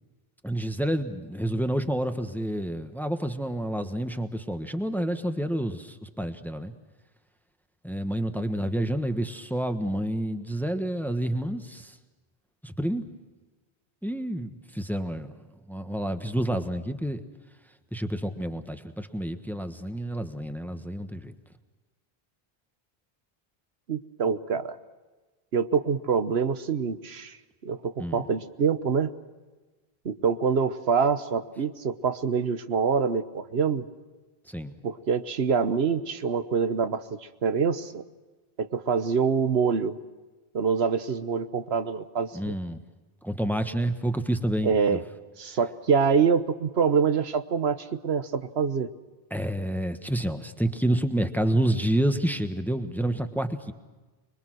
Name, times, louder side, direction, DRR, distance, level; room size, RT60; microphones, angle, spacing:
voice 1, 0.4-6.7 7.8-11.9 12.6-13.1 14.0-15.3 15.7-17.2 17.9-21.3 28.0-28.2 34.5-34.7 42.3-42.8 43.2-45.0 49.3-53.7, right 1 dB, ahead, 8 dB, 1.3 m, -29 dB
voice 2, 23.9-24.8 25.5-27.4 27.6-29.1 30.0-33.9 34.8-38.0 38.6-40.0 40.5-42.5 44.6-45.0 45.4-48.9, right 6 dB, 85° right, 10 dB, 1.3 m, -25 dB
25.5 x 22.5 x 6.3 m, 1.3 s
omnidirectional pair, 1.0 m